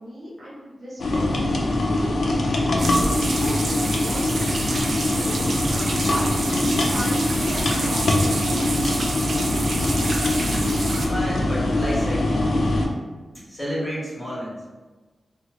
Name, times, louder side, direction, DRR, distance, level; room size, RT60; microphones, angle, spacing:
voice 1, 0.0-1.3 1.8-4.3 4.6-8.8, equal, 45° right, -8 dB, 0.7 m, -37 dB
sound 1, 1.0-12.9, left 1 dB, 75° left, 0.4 m, -23 dB
sound 2, 2.8-11.1, right 2 dB, 65° right, 0.4 m, -29 dB
voice 2, 11.0-12.3 13.5-14.6, equal, 5° left, -9 dB, 1.5 m, -30 dB
3.0 x 2.3 x 2.9 m, 1.3 s
wide cardioid pair, 140°, 0 cm